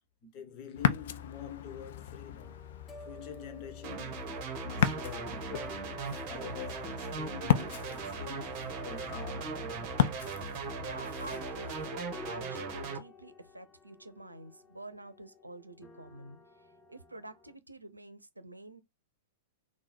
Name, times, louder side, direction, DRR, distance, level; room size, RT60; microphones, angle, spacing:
voice 1, 0.2-2.6 3.0-5.8 6.3-10.0, left 7 dB, 40° left, 1.2 m, -46 dB
Ocean, 0.7-11.9, left 10 dB, 55° left, 0.5 m, -35 dB
sound 1, 2.4-17.5, left 3 dB, 10° left, 0.8 m, -53 dB
sound 2, 3.8-13.0, right 4 dB, 35° right, 1.4 m, -39 dB
voice 2, 10.8-18.8, right 2 dB, 90° right, 0.6 m, -48 dB
3.8 x 2.4 x 4.3 m
figure-of-eight pair, 100°, 0 cm